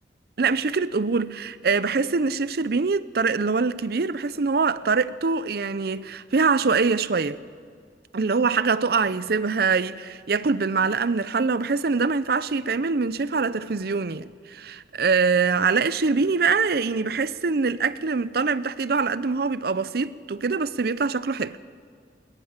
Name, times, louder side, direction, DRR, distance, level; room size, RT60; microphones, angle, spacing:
voice 1, 0.4-7.4 8.1-21.6, right 4 dB, 60° right, 0.6 m, -24 dB
21.0 x 20.0 x 7.4 m
head